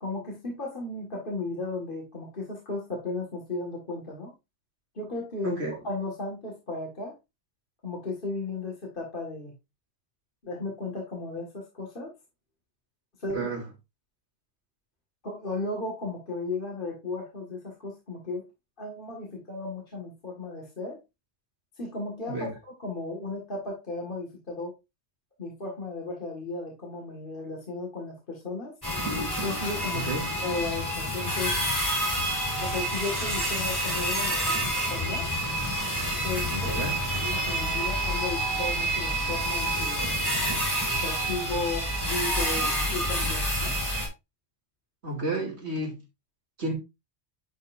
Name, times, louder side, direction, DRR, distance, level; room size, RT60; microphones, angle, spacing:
voice 1, 0.0-4.3 5.0-7.1 7.8-9.5 10.4-12.1 13.2-13.5 15.2-18.5 18.8-21.0 21.8-24.8 25.4-28.7 29.4-30.1 30.4-31.6 32.6-35.3 36.2-36.8 37.2-40.0 41.0-43.8, left 3 dB, 50° left, 2.0 m, -35 dB
voice 2, 13.3-13.7 22.3-22.5 29.9-30.3 36.6-37.0 45.0-46.0 46.6-46.7, right 2 dB, 70° right, 2.9 m, -31 dB
sound 1, 28.8-44.1, right 1 dB, 20° left, 4.0 m, -28 dB
10.5 x 5.5 x 2.5 m
omnidirectional pair, 1.2 m